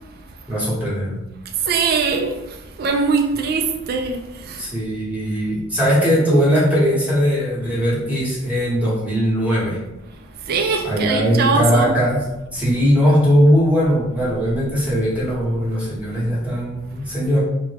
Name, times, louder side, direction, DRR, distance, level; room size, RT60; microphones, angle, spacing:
voice 1, 0.5-1.2 4.6-9.8 10.8-12.2 12.5-17.4, equal, 5° right, -8 dB, 1.1 m, -19 dB
voice 2, 1.5-4.7 10.4-11.9, right 4 dB, 50° right, 3 dB, 0.3 m, -22 dB
3.4 x 2.2 x 3.3 m, 0.98 s
head